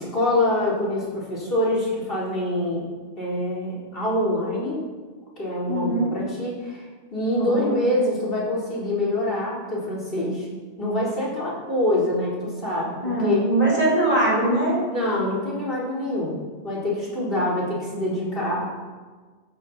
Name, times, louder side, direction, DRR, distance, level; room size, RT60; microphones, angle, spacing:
voice 1, 0.0-2.9 3.2-4.8 5.4-6.8 7.1-10.5 10.8-13.5 14.9-16.4 16.6-18.7, left 1 dB, 55° left, -5 dB, 4.5 m, -25 dB
voice 2, 5.7-6.2 7.3-7.8 13.0-14.8, right 1 dB, 35° left, -6 dB, 5.2 m, -22 dB
15.5 x 11.5 x 4.4 m, 1.4 s
omnidirectional pair, 1.1 m